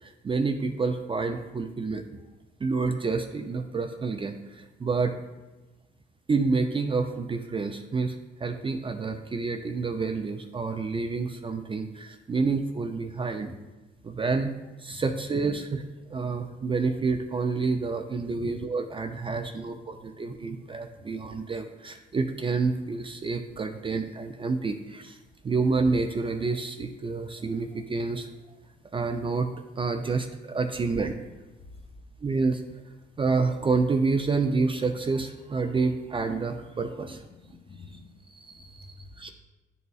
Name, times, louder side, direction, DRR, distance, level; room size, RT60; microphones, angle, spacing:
voice 1, 0.0-2.0 2.6-5.2 6.3-13.5 14.0-14.5 14.8-25.2 25.4-28.6 28.9-29.5 29.8-31.1 32.2-32.6 33.2-37.3 38.3-39.3, right 4 dB, 25° right, 5 dB, 0.4 m, -28 dB
voice 2, 37.4-38.2 38.5-38.9, left 4 dB, 30° left, 4 dB, 0.8 m, -48 dB
9.8 x 4.0 x 2.4 m, 1.1 s
cardioid pair, 90°, 20 cm